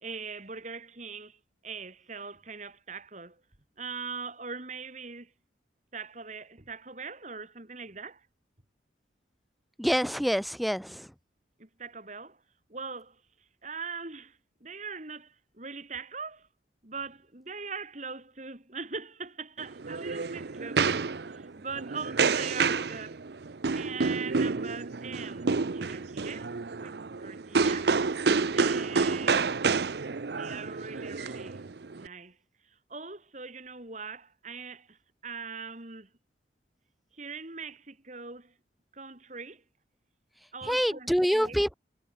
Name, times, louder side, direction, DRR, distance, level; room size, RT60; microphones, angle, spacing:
voice 1, 0.0-3.4 3.8-5.3 5.9-8.3 11.6-12.4 12.7-16.5 16.8-23.2 23.7-26.9 27.2-27.9 28.5-29.6 30.3-31.7 31.9-32.4 32.6-36.1 37.1-38.5 38.9-39.6 40.5-41.6, right 5 dB, 40° right, 2.5 m, -41 dB
voice 2, 9.8-11.1 40.6-41.7, equal, ahead, 2.9 m, -26 dB
sound 1, 19.6-32.1, right 4 dB, 60° right, 0.6 m, -29 dB
head